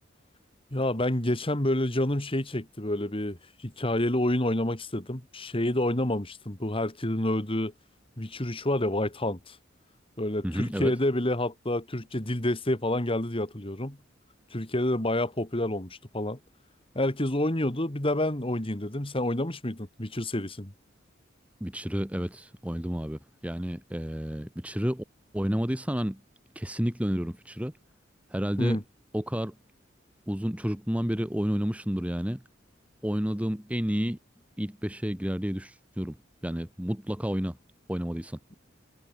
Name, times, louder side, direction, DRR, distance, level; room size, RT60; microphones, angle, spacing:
voice 1, 0.7-7.7 8.2-9.6 10.2-14.0 14.5-16.4 16.9-20.7 28.6-28.8, left 1 dB, 30° left, 2.4 m, -28 dB
voice 2, 10.4-10.9 21.6-25.0 25.3-26.2 26.5-27.7 28.3-28.8 29.1-29.5 30.3-32.4 33.0-34.2 34.6-36.2 36.4-37.6 37.9-38.4, equal, 5° right, 1.2 m, -30 dB
head